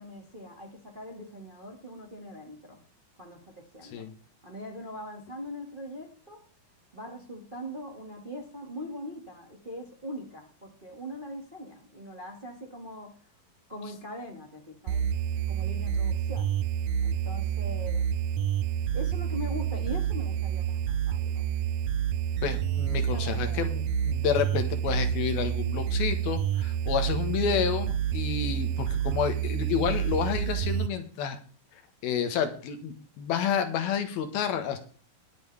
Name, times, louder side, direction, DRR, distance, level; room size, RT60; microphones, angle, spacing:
voice 1, 0.0-2.8 3.2-4.1 4.4-6.4 6.9-13.2 13.7-15.1 15.5-16.5 17.0-18.1 18.9-21.4 23.0-23.7, equal, 20° right, 1 dB, 1.4 m, -41 dB
sound 1, 14.9-30.9, right 9 dB, 85° right, 1.7 m, -29 dB
voice 2, 22.4-31.4 32.0-34.8, left 8 dB, 80° left, 7 dB, 3.4 m, -30 dB
20.5 x 8.0 x 3.5 m, 0.40 s
omnidirectional pair, 4.2 m